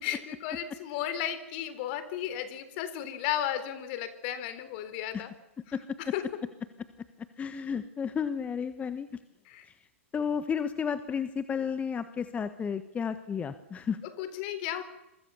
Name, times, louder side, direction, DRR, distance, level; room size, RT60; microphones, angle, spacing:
voice 1, 0.0-5.3 6.1-6.2 9.5-9.7 14.2-14.8, left 11 dB, 50° left, 12 dB, 3.9 m, -34 dB
voice 2, 7.4-9.1 9.7-9.8 10.1-14.0, left 6 dB, 20° left, 12 dB, 1.4 m, -32 dB
26.5 x 24.0 x 7.1 m, 0.90 s
hypercardioid pair, 115°, 7 cm